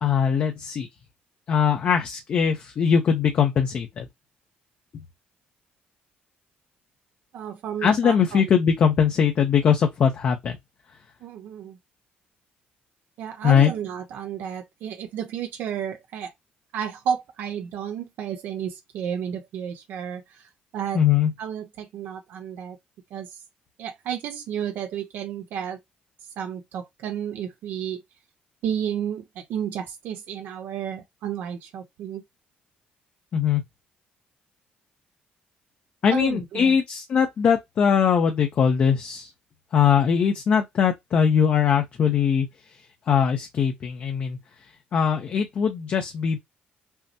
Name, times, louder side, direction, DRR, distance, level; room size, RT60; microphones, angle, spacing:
voice 1, 0.0-0.9 1.5-4.1 7.8-10.6 13.4-13.7 20.9-21.3 33.3-33.6 36.0-39.3 39.7-42.5 43.1-44.4 44.9-46.4, left 7 dB, 45° left, 0.7 m, -21 dB
voice 2, 7.3-8.4 11.2-11.8 13.2-16.3 16.7-21.0 21.4-22.8 23.1-23.4 23.8-25.8 26.4-28.0 28.6-32.2 36.1-36.8, right 8 dB, 75° right, 0.8 m, -32 dB
5.5 x 2.1 x 2.8 m
cardioid pair, 130°, 3 cm